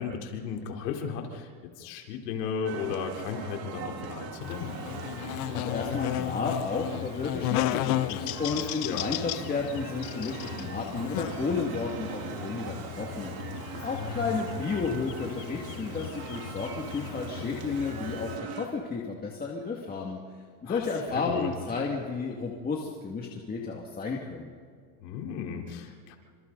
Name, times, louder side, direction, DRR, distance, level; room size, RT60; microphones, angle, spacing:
voice 1, 0.0-4.7 8.8-9.1 13.7-14.7 20.6-21.5 25.0-26.2, left 6 dB, 85° left, 2 dB, 3.9 m, -35 dB
sound 1, 2.6-18.7, right 6 dB, 50° right, 3.3 m, -41 dB
Buzz, 4.4-18.4, left 17 dB, 50° left, 0.5 m, -35 dB
voice 2, 5.2-20.2 20.6-24.5, left 4 dB, 20° left, -1 dB, 2.2 m, -32 dB
29.0 x 26.5 x 4.1 m, 2.1 s
supercardioid pair, 140°, 48 cm